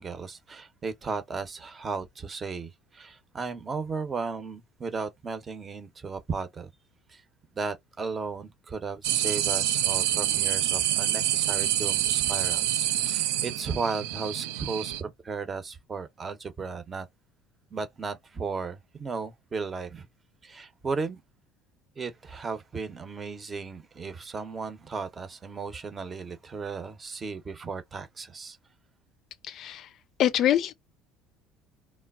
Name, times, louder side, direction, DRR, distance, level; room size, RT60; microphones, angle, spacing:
voice 1, 0.0-6.7 7.1-7.2 7.5-17.1 17.7-20.1 20.4-21.2 22.0-28.6, right 4 dB, 30° right, 0.7 m, -35 dB
sound 1, 9.0-15.0, right 12 dB, 80° right, 0.3 m, -27 dB
voice 2, 29.5-29.9 30.2-30.7, left 11 dB, 55° left, 0.3 m, -24 dB
3.1 x 2.0 x 2.3 m
hypercardioid pair, 70°, 0 cm